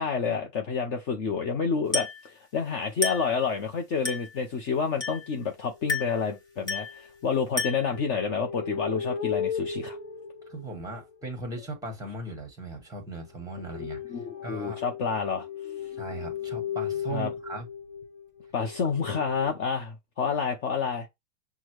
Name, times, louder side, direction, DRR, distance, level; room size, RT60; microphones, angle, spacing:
voice 1, 0.0-10.0 13.7-15.5 17.1-17.3 18.5-21.1, left 5 dB, 30° left, 0.8 m, -29 dB
Glass, 1.9-2.3 3.0-3.4 4.0-4.4 5.0-5.3 5.9-6.2 6.7-7.0 7.6-8.0, left 2 dB, 10° left, 1.7 m, -31 dB
sound 1, 4.9-5.0 5.7-5.9 6.8-11.3 13.5-19.5, left 7 dB, 50° left, 1.3 m, -36 dB
voice 2, 10.5-14.0 14.4-14.8 15.9-17.7, right 2 dB, 5° right, 1.7 m, -38 dB
6.1 x 2.3 x 3.1 m
supercardioid pair, 145°, 48 cm